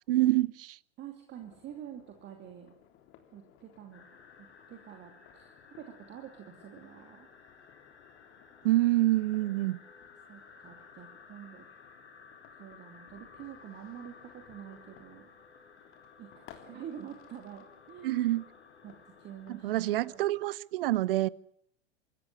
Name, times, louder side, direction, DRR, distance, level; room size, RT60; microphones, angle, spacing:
voice 1, 0.1-0.8 8.6-9.8 18.0-18.4 19.5-21.3, right 16 dB, 55° right, 0.8 m, -27 dB
voice 2, 1.0-2.7 3.3-4.0 4.7-7.3 10.3-11.7 12.6-15.3 16.2-18.2 18.8-18.9 19.2-20.2, right 10 dB, 30° right, 2.8 m, -47 dB
sound 1, 1.4-20.4, left 10 dB, 40° left, 3.6 m, -60 dB
sound 2, 3.9-20.1, left 5 dB, 80° left, 4.6 m, -56 dB
25.5 x 14.0 x 9.7 m
figure-of-eight pair, 95°, 33 cm